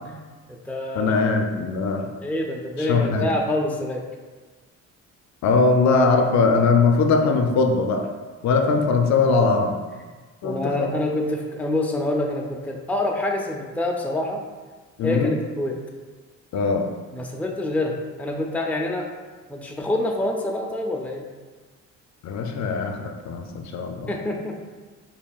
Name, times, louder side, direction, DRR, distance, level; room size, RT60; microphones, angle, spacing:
voice 1, 0.1-1.1 2.2-4.0 10.4-14.4 15.0-15.8 17.1-19.1 19.5-21.2 24.1-24.6, left 1 dB, 5° left, 0 dB, 0.5 m, -26 dB
voice 2, 1.0-2.1 2.8-3.3 5.4-8.1 8.4-9.8 10.4-10.9 15.0-15.4 16.5-16.9 22.2-24.1, left 4 dB, 65° left, 4 dB, 0.5 m, -21 dB
5.2 x 2.7 x 2.3 m, 1.4 s
cardioid pair, 90°, 30 cm